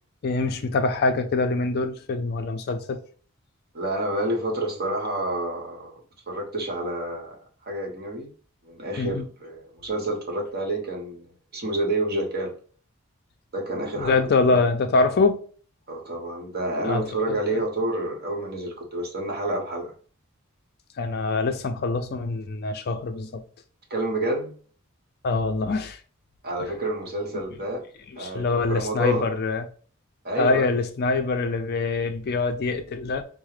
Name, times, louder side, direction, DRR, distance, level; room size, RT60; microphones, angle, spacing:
voice 1, 0.2-3.0 9.0-9.3 13.9-15.4 16.8-17.6 21.0-23.4 25.2-26.0 26.6-26.7 28.1-29.7 30.4-33.2, left 3 dB, 50° left, 0.4 m, -24 dB
voice 2, 3.7-6.0 6.3-7.4 7.6-8.3 8.6-12.5 13.5-14.2 14.5-14.6 15.9-19.9 23.9-24.5 26.4-27.9 28.2-29.3 30.2-30.7, right 1 dB, 50° right, 1.0 m, -29 dB
4.6 x 2.0 x 3.2 m
head